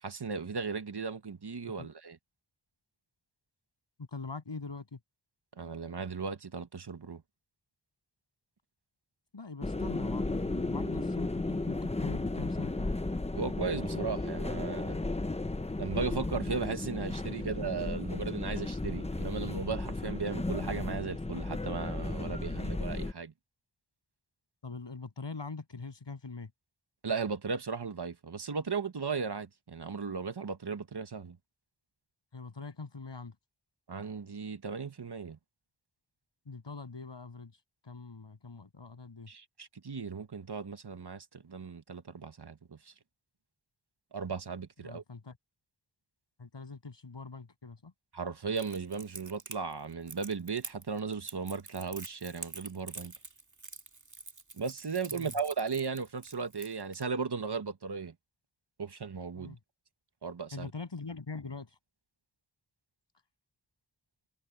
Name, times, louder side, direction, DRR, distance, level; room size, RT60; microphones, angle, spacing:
voice 1, 0.0-2.2 5.6-7.2 13.3-15.0 15.8-23.3 27.0-31.4 33.9-35.4 39.3-42.9 44.1-45.0 48.1-53.1 54.6-58.1 58.8-59.6 60.2-60.7, right 5 dB, 65° right, 1.6 m, -36 dB
voice 2, 4.0-5.0 9.3-13.0 24.6-26.5 32.3-33.3 36.5-37.5 37.8-39.3 44.8-45.4 46.4-47.9 55.1-55.3 59.4-59.6 60.5-61.7, left 4 dB, 75° left, 7.8 m, -43 dB
sound 1, 9.6-23.1, left 2 dB, 15° left, 0.7 m, -34 dB
Crackle, 48.6-57.0, right 3 dB, 45° right, 2.1 m, -46 dB
wide cardioid pair, 65°, 43 cm